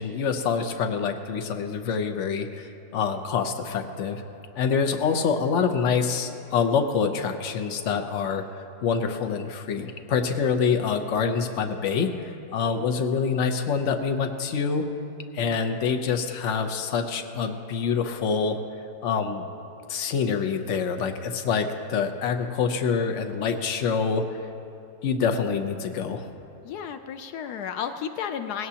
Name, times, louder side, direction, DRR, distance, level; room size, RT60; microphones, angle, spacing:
voice 1, 0.0-4.2 4.6-8.4 8.8-14.8 15.3-18.6 19.0-19.5 19.9-24.2 25.0-26.3, left 6 dB, 55° left, 6 dB, 1.1 m, -26 dB
voice 2, 26.6-28.7, left 8 dB, 80° left, 9 dB, 1.1 m, -32 dB
18.5 x 17.0 x 2.9 m, 2.9 s
omnidirectional pair, 1.7 m